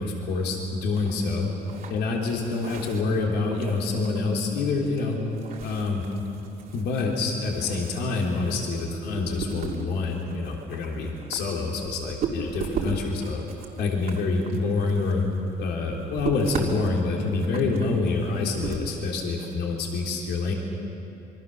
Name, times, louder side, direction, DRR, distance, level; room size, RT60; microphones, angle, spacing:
voice 1, 0.0-1.5 1.9-5.2 5.6-6.0 6.7-13.4 13.8-15.2 15.6-20.5, left 3 dB, 80° left, 0 dB, 3.5 m, -27 dB
sound 1, 0.9-19.5, right 5 dB, 60° right, 2.7 m, -38 dB
26.5 x 23.0 x 6.8 m, 2.8 s
cardioid pair, 110°, 17 cm